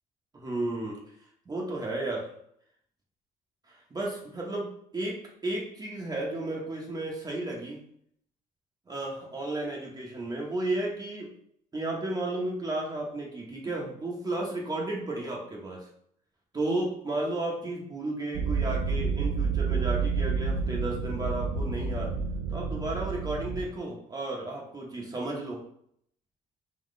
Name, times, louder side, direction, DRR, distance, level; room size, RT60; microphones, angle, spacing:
voice 1, 0.3-1.0 1.5-2.3 3.7-7.8 8.9-11.3 11.7-15.9 16.5-22.1 22.5-25.6, right 2 dB, 25° right, -2 dB, 0.9 m, -33 dB
sound 1, 18.3-23.7, right 5 dB, 85° right, 0.6 m, -29 dB
3.8 x 3.0 x 3.7 m, 0.69 s
cardioid pair, 110°, 17 cm